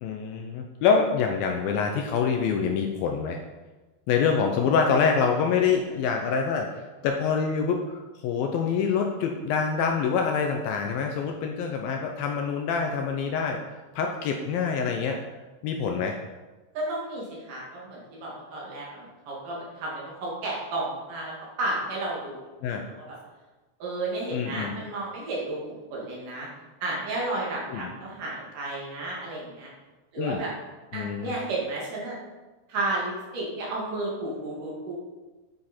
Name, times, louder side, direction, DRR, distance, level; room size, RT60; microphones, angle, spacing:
voice 1, 0.0-3.4 4.1-6.7 7.0-13.6 13.9-15.2 15.6-16.2 22.6-22.8 24.3-24.7 27.7-27.9 30.2-30.4 30.9-31.4, left 6 dB, 75° left, 3 dB, 2.3 m, -26 dB
voice 2, 16.7-22.4 22.7-23.2 23.8-26.5 26.8-29.7 30.1-30.5 30.9-32.2 32.7-34.9, right 2 dB, 55° right, -4 dB, 3.6 m, -32 dB
9.7 x 9.1 x 4.4 m, 1.2 s
omnidirectional pair, 4.7 m